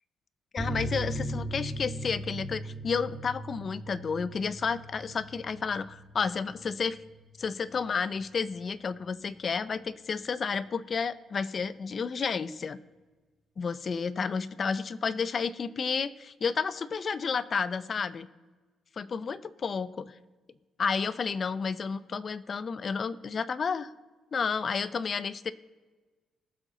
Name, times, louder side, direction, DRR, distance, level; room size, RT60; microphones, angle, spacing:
voice 1, 0.5-7.0 7.4-12.8 13.6-18.3 19.0-20.1 20.8-23.9 24.3-25.5, left 5 dB, 35° left, 16 dB, 0.5 m, -31 dB
sound 1, 0.6-7.7 7.9-8.0 8.4-8.5, right 1 dB, 15° left, 1.4 m, -38 dB
20.0 x 7.4 x 3.9 m, 1.3 s
cardioid pair, 135°, 0 cm